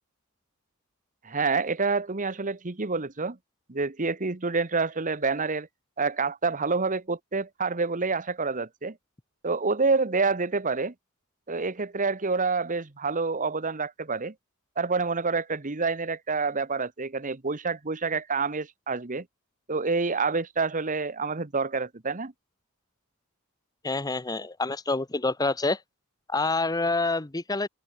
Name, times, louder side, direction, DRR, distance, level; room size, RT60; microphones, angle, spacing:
voice 1, 1.2-3.4 3.7-5.7 6.0-9.0 9.4-10.9 11.5-14.3 14.8-19.2 19.7-22.3, right 4 dB, 35° right, 1.2 m, -27 dB
voice 2, 23.8-25.8 26.3-27.7, left 3 dB, 15° left, 0.8 m, -27 dB
open air
head